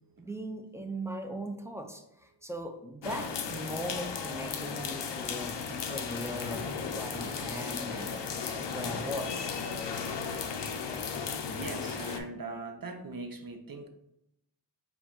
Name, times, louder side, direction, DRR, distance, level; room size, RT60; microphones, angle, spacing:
voice 1, 0.2-8.2 8.7-9.5, equal, 5° right, 5 dB, 0.5 m, -39 dB
sound 1, 3.0-12.2, left 6 dB, 85° left, 0.5 m, -35 dB
voice 2, 11.5-13.9, right 2 dB, 55° right, 6 dB, 0.6 m, -40 dB
4.6 x 2.3 x 3.8 m, 0.81 s
wide cardioid pair, 40°, 41 cm